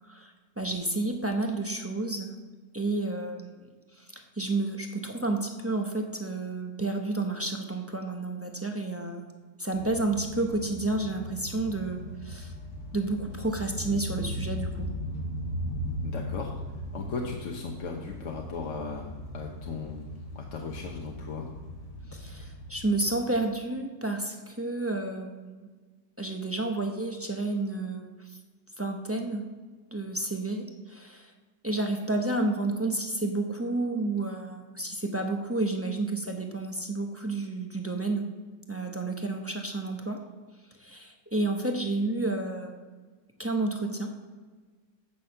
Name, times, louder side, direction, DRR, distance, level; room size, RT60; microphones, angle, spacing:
voice 1, 0.1-2.3 2.7-3.7 4.0-9.2 9.6-12.5 12.9-14.9 22.1-25.7 26.2-28.1 28.8-29.4 29.9-31.3 31.6-38.2 38.7-40.2 40.8-42.9 43.4-44.1, right 2 dB, 15° right, 2 dB, 0.5 m, -30 dB
sound 1, 9.7-23.6, equal, 85° left, 2.2 m, -38 dB
voice 2, 16.0-16.5 16.9-21.5, left 4 dB, 55° left, 1 dB, 1.1 m, -37 dB
9.0 x 6.2 x 6.7 m, 1.4 s
omnidirectional pair, 1.8 m